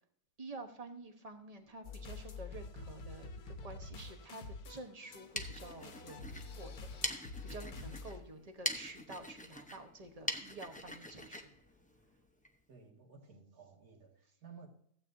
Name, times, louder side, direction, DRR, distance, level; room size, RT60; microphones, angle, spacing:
voice 1, 0.4-7.0 7.4-11.5, right 2 dB, 30° right, 5 dB, 1.0 m, -50 dB
sound 1, 1.8-8.2, left 3 dB, 85° left, 1.5 m, -47 dB
sound 2, 5.0-12.5, left 1 dB, 10° left, 0.5 m, -44 dB
voice 2, 7.7-8.2 12.7-14.7, right 3 dB, 70° right, -1 dB, 2.5 m, -55 dB
15.5 x 8.2 x 2.7 m, 0.66 s
omnidirectional pair, 1.6 m